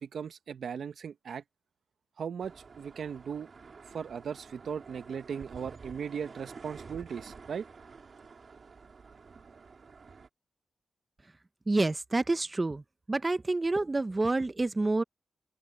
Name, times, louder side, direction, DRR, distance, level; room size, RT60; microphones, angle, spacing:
voice 1, 0.0-1.4 2.2-3.5 3.9-7.7, right 7 dB, 75° right, 1.1 m, -38 dB
sound 1, 2.4-10.3, right 5 dB, 55° right, 3.1 m, -50 dB
voice 2, 11.7-12.8 13.1-15.0, right 2 dB, 30° right, 0.6 m, -28 dB
open air
cardioid pair, 65°, 0 cm